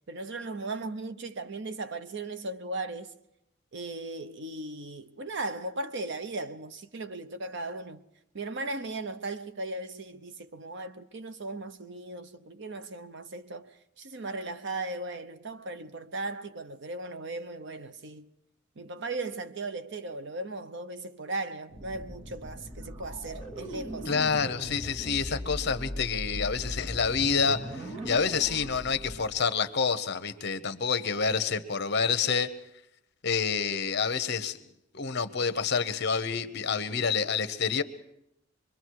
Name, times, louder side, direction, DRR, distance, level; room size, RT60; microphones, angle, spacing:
voice 1, 0.1-3.1 3.7-8.0 8.3-18.3 18.8-24.1 28.0-28.1, right 2 dB, 60° right, 0.8 m, -37 dB
sound 1, 21.7-29.3, equal, 30° right, 2.6 m, -39 dB
voice 2, 24.1-32.5 33.2-34.6 34.9-37.8, left 5 dB, 55° left, 1.0 m, -28 dB
25.5 x 22.5 x 4.7 m
head